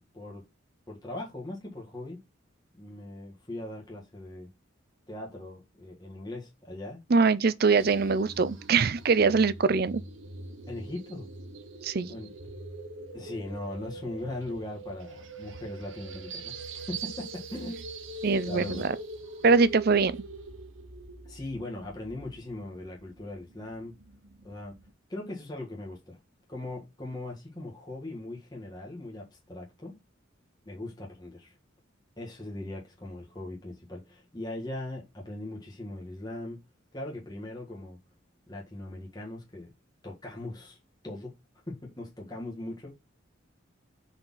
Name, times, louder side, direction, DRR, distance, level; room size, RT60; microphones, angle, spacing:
voice 1, 0.9-2.2 2.8-4.5 5.1-7.0 10.7-11.3 12.1-12.3 13.1-17.8 18.4-18.9 21.2-23.9 24.4-24.7 25.1-26.2 26.5-29.9 30.6-31.6 32.2-36.6 36.9-38.0 38.5-39.7 40.0-40.8 41.0-41.3 41.7-42.9, left 1 dB, 20° left, 1.7 m, -39 dB
voice 2, 7.1-10.0 11.8-12.1 18.2-18.8 19.4-20.1, right 4 dB, 50° right, 0.5 m, -23 dB
sound 1, 7.8-24.9, right 3 dB, 70° right, 1.1 m, -43 dB
5.6 x 4.3 x 5.6 m
head